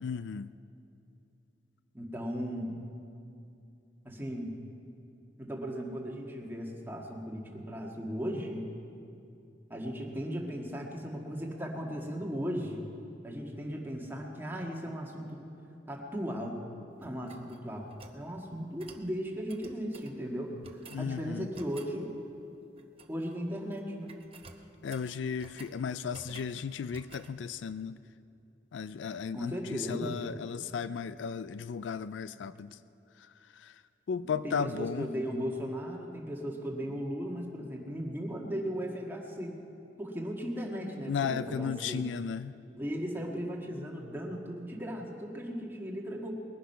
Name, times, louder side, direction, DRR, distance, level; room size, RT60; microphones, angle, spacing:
voice 1, 0.0-0.5 20.9-21.5 24.8-28.0 28.7-32.8 33.2-33.8 34.1-35.1 41.0-42.5, left 6 dB, 75° left, 15 dB, 0.4 m, -35 dB
voice 2, 1.9-2.8 4.1-4.5 5.4-8.6 9.7-12.8 13.2-15.5 15.9-16.6 17.0-20.5 21.0-22.2 23.1-24.2 29.3-30.2 34.4-39.6 40.0-42.0 42.8-46.3, equal, 10° right, -1 dB, 1.7 m, -37 dB
sound 1, 17.0-18.2 18.8-19.1 19.5-20.2 20.6-21.1 21.5-21.9 22.8-23.3 23.6-23.8 24.1-25.8 26.1-26.6 26.9-27.3, right 4 dB, 30° right, 0.9 m, -52 dB
20.5 x 10.0 x 5.7 m, 2.6 s
head